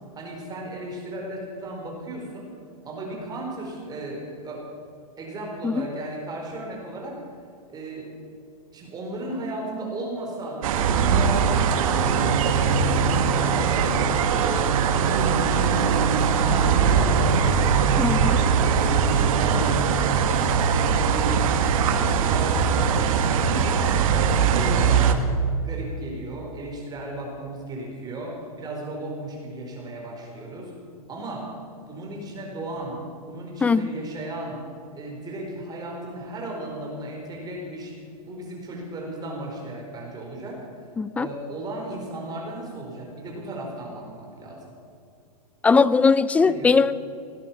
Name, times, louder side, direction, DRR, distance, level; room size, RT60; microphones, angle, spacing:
voice 1, 0.1-2.5 2.8-4.6 5.2-7.2 7.7-8.1 8.7-12.8 13.3-14.0 14.3-19.8 20.5-21.4 21.7-23.8 24.1-25.3 25.6-30.8 31.1-31.5 31.8-34.6 34.9-38.0 38.2-40.9 41.2-44.6 46.4-46.7, right 1 dB, 20° right, 0 dB, 4.6 m, -35 dB
sound 1, 10.6-25.1, right 6 dB, 60° right, 1.5 m, -21 dB
voice 2, 18.0-18.4 33.6-33.9 41.0-41.3 45.6-46.9, left 4 dB, 5° left, 17 dB, 0.3 m, -19 dB
17.5 x 10.5 x 7.4 m, 2.5 s
hypercardioid pair, 130°, 20 cm